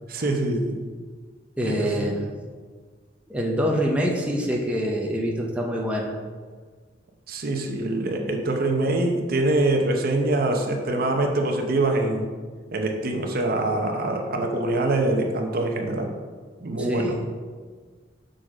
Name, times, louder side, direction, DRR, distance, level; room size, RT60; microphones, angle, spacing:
voice 1, 0.1-0.8 1.6-2.1 7.3-12.3 12.7-16.1 16.6-17.2, right 2 dB, 55° right, 3 dB, 0.8 m, -24 dB
voice 2, 1.6-2.3 3.3-6.2 16.8-17.2, equal, 5° right, -1 dB, 0.6 m, -25 dB
6.3 x 3.9 x 4.8 m, 1.5 s
head